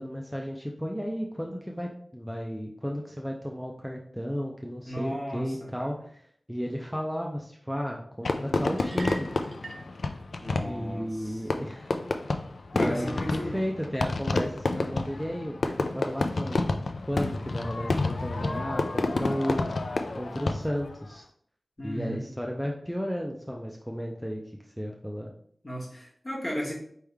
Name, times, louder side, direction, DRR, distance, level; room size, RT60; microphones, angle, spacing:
voice 1, 0.0-6.2 6.5-9.3 10.6-11.9 12.7-16.8 17.1-19.7 20.2-21.3 21.8-25.3, equal, ahead, 0 dB, 0.5 m, -33 dB
voice 2, 4.9-5.9 10.4-11.4 12.7-13.5 21.8-22.2 25.6-26.7, equal, 35° left, -3 dB, 1.4 m, -35 dB
Fireworks, 8.2-21.0, left 3 dB, 90° left, 0.3 m, -29 dB
sound 1, 8.8-9.9, right 2 dB, 80° right, 0.6 m, -42 dB
4.4 x 3.4 x 3.4 m, 0.62 s
wide cardioid pair, 65°, 0 cm